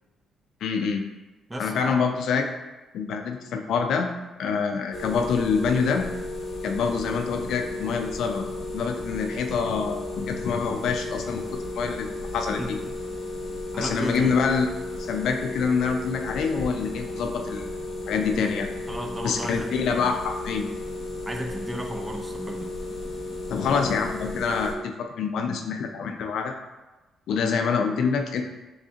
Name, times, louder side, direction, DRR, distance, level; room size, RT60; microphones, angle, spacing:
voice 1, 0.6-1.0 1.6-2.5 2.9-4.1 4.4-6.1 6.6-8.4 8.7-11.4 11.8-12.8 13.8-14.7 15.1-17.7 18.1-18.7 19.2-20.7 23.5-26.5 27.3-28.4, left 5 dB, 75° left, 5 dB, 0.4 m, -26 dB
voice 2, 1.5-2.0 12.6-12.9 13.7-14.4 18.9-20.2 21.2-22.7, right 1 dB, 20° right, 3 dB, 0.5 m, -34 dB
sound 1, 4.9-24.7, left 2 dB, 50° left, 0.7 m, -34 dB
3.6 x 3.2 x 2.7 m, 1.1 s
cardioid pair, 90°, 0 cm